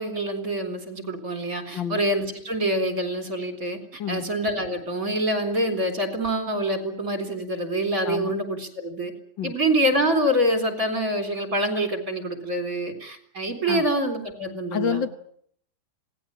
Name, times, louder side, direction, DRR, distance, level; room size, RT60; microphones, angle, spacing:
voice 1, 0.0-3.8 4.1-9.1 9.4-15.0, right 1 dB, 45° right, 6 dB, 4.3 m, -26 dB
voice 2, 14.7-15.1, left 7 dB, 80° left, 9 dB, 2.2 m, -28 dB
26.5 x 18.5 x 8.9 m, 0.67 s
omnidirectional pair, 2.0 m